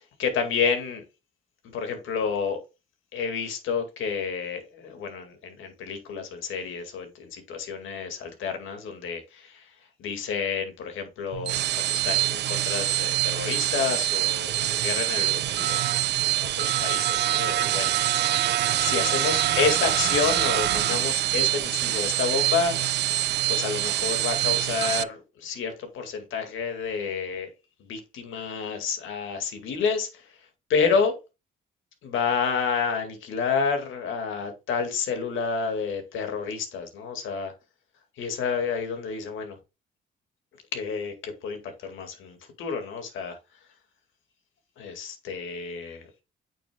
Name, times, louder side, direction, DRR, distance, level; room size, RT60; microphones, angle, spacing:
voice 1, 0.2-1.0 1.6-2.6 3.1-9.7 10.0-18.5 18.8-22.9 23.5-27.5 27.8-30.3 30.7-31.2 32.0-37.5 38.2-39.6 40.7-43.4 44.8-46.1, left 5 dB, 80° left, 2.0 m, -29 dB
sound 1, 11.3-25.0, right 13 dB, 60° right, 0.4 m, -25 dB
8.6 x 6.4 x 2.3 m
cardioid pair, 90°, 20 cm